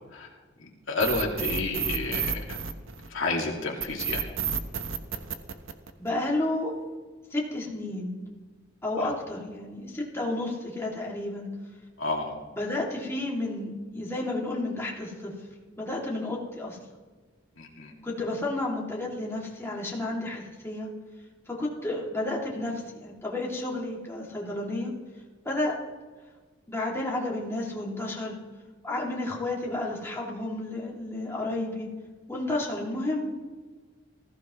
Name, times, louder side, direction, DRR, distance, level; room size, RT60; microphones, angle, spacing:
voice 1, 0.6-2.6 3.1-4.3 9.0-9.1 12.0-12.3 17.6-17.9, left 3 dB, 85° left, 0 dB, 2.3 m, -30 dB
sound 1, 1.0-3.3 3.8-6.2, right 7 dB, 85° right, 1.1 m, -30 dB
voice 2, 6.0-6.7 7.3-8.1 8.8-11.5 12.6-15.3 15.8-16.8 18.0-20.9 21.5-24.9 25.4-25.8 26.7-28.4 28.8-31.9 32.3-33.3, left 2 dB, 15° left, -3 dB, 2.5 m, -31 dB
20.0 x 15.0 x 3.1 m, 1.4 s
head